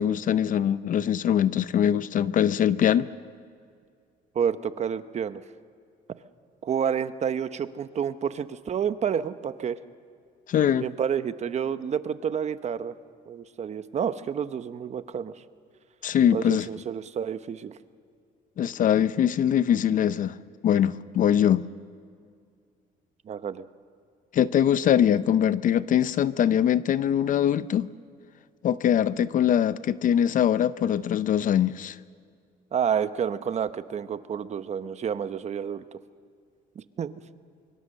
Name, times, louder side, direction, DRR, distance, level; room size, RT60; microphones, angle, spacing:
voice 1, 0.0-3.1 10.5-10.9 16.0-16.7 18.6-20.4 20.6-21.6 24.3-27.9 28.6-32.0, left 9 dB, 50° left, 0.7 m, -22 dB
voice 2, 4.3-5.4 6.6-9.8 10.8-12.9 13.3-15.4 16.3-17.8 23.2-23.7 32.7-36.0 36.8-37.2, right 8 dB, 40° right, 0.9 m, -29 dB
24.0 x 24.0 x 6.6 m
cardioid pair, 110°, 17 cm